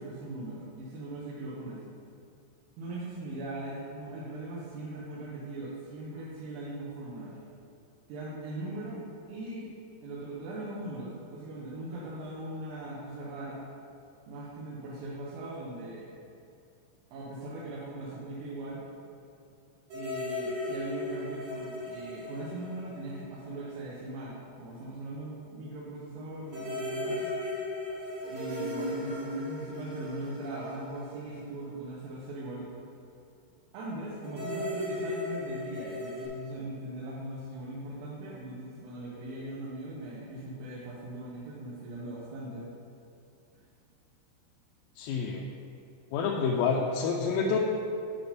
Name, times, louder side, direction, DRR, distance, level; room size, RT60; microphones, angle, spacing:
voice 1, 0.0-1.8 2.8-7.4 8.1-9.0 9.3-9.7 10.0-13.6 14.3-16.1 17.1-18.8 19.9-27.3 28.3-32.7 33.7-42.7 43.5-43.6, right 2 dB, 80° right, -6 dB, 3.6 m, -40 dB
sound 1, 19.9-23.7 23.9-24.0 26.5-31.9 34.2-36.3, left 1 dB, 60° right, 2.3 m, -36 dB
voice 2, 45.0-45.4 46.1-47.6, left 5 dB, 85° left, -1 dB, 3.2 m, -28 dB
9.7 x 4.9 x 5.2 m, 2.5 s
omnidirectional pair, 5.8 m